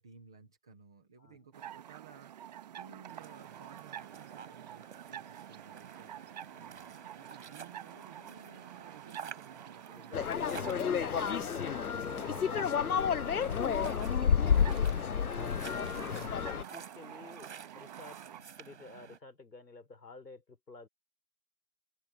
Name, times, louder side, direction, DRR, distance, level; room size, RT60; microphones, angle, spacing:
voice 1, 0.0-2.5 2.8-6.4 7.1-10.4 12.2-14.0, right 6 dB, 5° right, 0.7 m, -57 dB
sound 1, 1.5-18.4, right 11 dB, 25° right, 1.7 m, -49 dB
sound 2, 3.1-19.2, right 7 dB, 45° right, 6.6 m, -51 dB
voice 2, 6.6-6.9 9.9-11.8 14.9-20.9, left 3 dB, 85° left, 4.6 m, -53 dB
sound 3, 10.1-16.6, left 7 dB, 65° left, 0.9 m, -30 dB
figure-of-eight pair, 155°, 48 cm